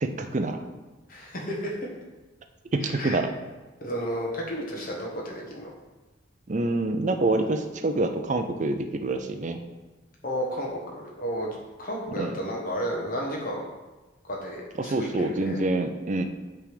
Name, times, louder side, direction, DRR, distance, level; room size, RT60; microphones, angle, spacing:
voice 1, 0.0-0.6 2.7-3.3 6.5-9.6 12.2-12.3 14.8-16.2, right 2 dB, 35° right, 7 dB, 0.5 m, -26 dB
voice 2, 1.1-1.7 2.8-3.2 3.8-5.7 10.2-13.7 14.2-15.6, equal, 45° left, -2 dB, 1.4 m, -32 dB
7.6 x 3.5 x 5.1 m, 1.2 s
head